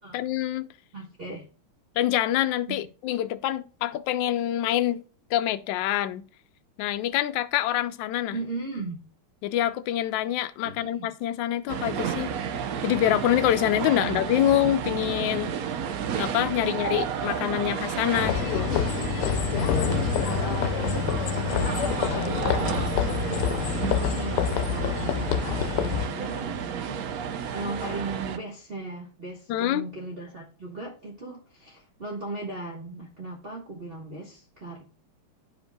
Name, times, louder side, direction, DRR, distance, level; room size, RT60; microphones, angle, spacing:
voice 1, 0.1-0.7 2.0-5.0 5.3-6.2 6.8-8.4 9.4-12.3 12.8-15.5 16.1-18.7 29.5-29.9, left 12 dB, 70° left, 1.2 m, -26 dB
voice 2, 0.9-1.5 2.7-2.8 8.3-9.1 10.6-11.1 14.0-14.2 16.6-16.7 19.5-34.8, right 2 dB, 35° right, 1.1 m, -37 dB
sound 1, 11.7-28.4, right 7 dB, 70° right, 0.8 m, -31 dB
sound 2, 18.1-26.1, left 9 dB, 90° left, 1.5 m, -27 dB
11.5 x 5.3 x 2.2 m
omnidirectional pair, 2.4 m